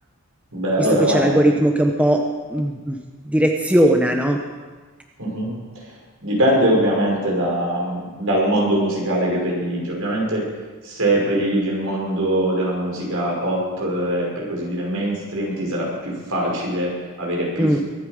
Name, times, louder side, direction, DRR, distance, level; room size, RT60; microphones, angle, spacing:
voice 1, 0.5-1.4 5.2-5.5 6.2-10.5 10.8-17.8, right 1 dB, 70° right, -3 dB, 5.3 m, -22 dB
voice 2, 1.1-3.0 3.2-4.4 17.6-17.8, right 1 dB, 5° right, 2 dB, 0.8 m, -18 dB
23.0 x 8.9 x 4.9 m, 1.4 s
head